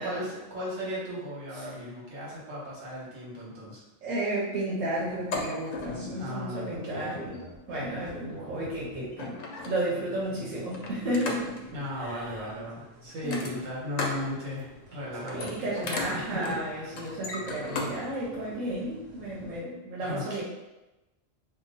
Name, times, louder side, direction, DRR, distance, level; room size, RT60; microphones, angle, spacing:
voice 1, 0.0-3.8 6.2-7.2 11.7-15.8 16.1-17.0 20.0-20.4, left 1 dB, 70° right, -5 dB, 1.5 m, -37 dB
voice 2, 4.0-7.4 7.7-11.6 12.0-12.4 13.2-13.6 15.2-20.4, right 1 dB, 90° right, -6 dB, 1.1 m, -33 dB
sound 1, 4.9-19.6, equal, 45° right, 1.1 m, -50 dB
sound 2, 5.1-6.1 7.2-7.5 8.6-8.7 9.1-10.0 10.7-11.7 13.2-14.3 14.6-14.9 15.2-17.9 18.3-18.4, left 3 dB, 75° left, 1.0 m, -36 dB
2.9 x 2.3 x 3.9 m, 1.0 s
omnidirectional pair, 1.4 m